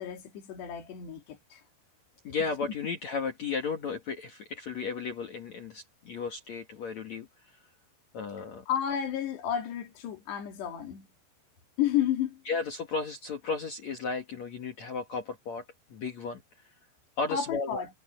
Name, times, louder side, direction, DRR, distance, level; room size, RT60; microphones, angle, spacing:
voice 1, 0.0-1.6 8.7-11.1 11.8-12.4 17.3-17.9, left 10 dB, 90° left, 4.8 m, -31 dB
voice 2, 2.2-7.3 8.1-8.6 12.5-15.6 15.9-16.4 17.2-17.8, left 4 dB, 50° left, 2.6 m, -34 dB
omnidirectional pair, 4.7 m